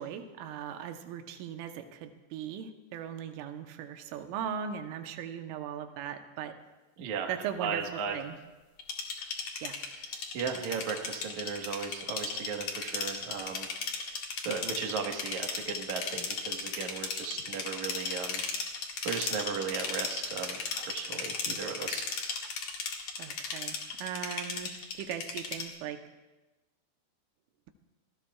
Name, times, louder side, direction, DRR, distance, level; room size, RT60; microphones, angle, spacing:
voice 1, 0.0-6.6 7.3-8.4 9.6-9.8 23.2-26.0, right 8 dB, 90° right, 6 dB, 3.5 m, -39 dB
voice 2, 7.0-7.3 7.6-8.2 10.3-13.7 14.0-18.4 19.0-22.1, right 6 dB, 70° right, 2 dB, 1.8 m, -36 dB
sound 1, 8.8-25.7, left 5 dB, 60° left, 1.8 m, -36 dB
26.0 x 19.0 x 2.4 m, 1.1 s
omnidirectional pair, 5.6 m